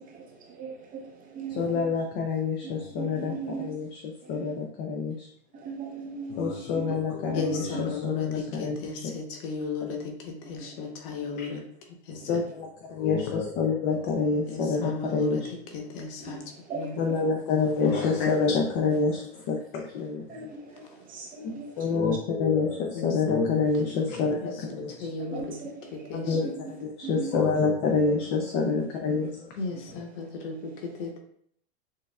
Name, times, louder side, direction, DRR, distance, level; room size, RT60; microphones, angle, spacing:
voice 1, 0.1-1.8 2.6-3.7 4.2-4.5 5.5-6.9 7.3-7.8 10.5-10.8 11.3-11.4 12.2-12.3 16.2-16.4 16.7-17.2 20.3-21.6 25.2-26.5 27.0-27.4, right 4 dB, 25° right, 0 dB, 0.6 m, -39 dB
voice 2, 1.5-5.3 6.3-8.9 9.9-10.0 11.4-11.5 12.3-15.5 17.0-20.5 21.8-25.1 26.1-29.5 29.9-30.0, left 4 dB, 30° left, 1 dB, 0.4 m, -27 dB
voice 3, 7.3-12.4 14.5-17.0 17.8-18.6 20.8-21.0 21.4-21.6 22.9-25.6 25.9-26.4 27.6-27.9 29.6-31.2, left 4 dB, 55° left, 3 dB, 0.9 m, -35 dB
6.5 x 2.3 x 2.2 m, 0.66 s
supercardioid pair, 140°, 32 cm